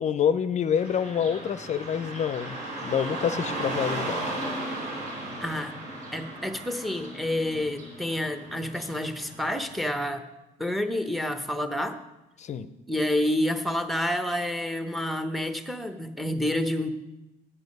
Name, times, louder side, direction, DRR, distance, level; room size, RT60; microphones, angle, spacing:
voice 1, 0.0-4.3 12.4-12.7, left 8 dB, 45° left, 12 dB, 0.5 m, -27 dB
Car passing by / Traffic noise roadway noise, 0.7-9.8, right 2 dB, 85° right, 3.5 m, -36 dB
voice 2, 5.4-5.7 6.1-10.2 10.6-12.0 12.9-16.9, left 1 dB, ahead, 8 dB, 0.8 m, -29 dB
9.7 x 8.1 x 5.3 m, 0.95 s
cardioid pair, 110°, 17 cm